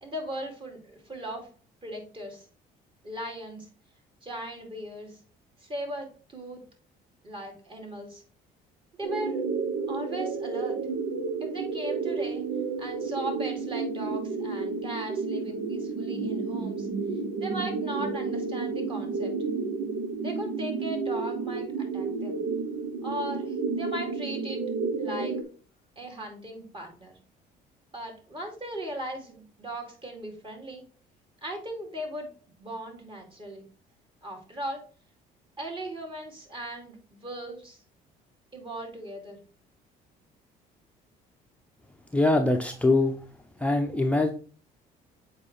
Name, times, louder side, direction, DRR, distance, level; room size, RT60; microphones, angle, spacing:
voice 1, 0.0-1.5 1.8-2.5 3.0-3.7 4.2-5.2 5.6-6.6 7.2-8.2 8.9-9.4 9.9-10.8 11.4-12.4 12.8-16.9 17.4-19.3 20.2-22.4 23.0-24.6 25.0-25.3 26.0-27.2 27.9-30.8 31.4-32.3 32.6-33.7 34.2-34.8 35.6-37.8 38.5-39.4, right 1 dB, 30° right, 1 dB, 2.6 m, -38 dB
sound 1, 9.0-25.4, right 4 dB, 85° right, 1.0 m, -31 dB
voice 2, 42.1-43.2 43.6-44.3, left 2 dB, 10° left, 3 dB, 0.6 m, -23 dB
7.3 x 4.9 x 3.2 m, 0.40 s
cardioid pair, 110°, 17 cm